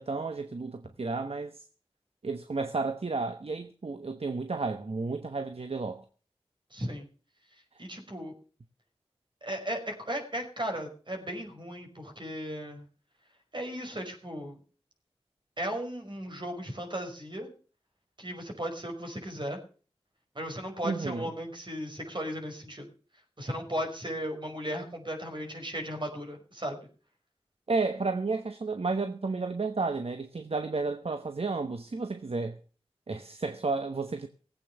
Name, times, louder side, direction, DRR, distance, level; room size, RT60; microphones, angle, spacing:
voice 1, 0.0-1.6 2.2-6.0 20.8-21.3 27.7-32.6 33.1-34.3, right 3 dB, 65° right, 1.1 m, -32 dB
voice 2, 6.7-7.1 7.8-8.3 9.4-12.8 13.5-14.6 15.6-17.5 18.2-19.6 20.4-22.8 23.4-26.8, equal, 45° right, 5.5 m, -36 dB
18.5 x 8.5 x 6.9 m
wide cardioid pair, 45°, 11 cm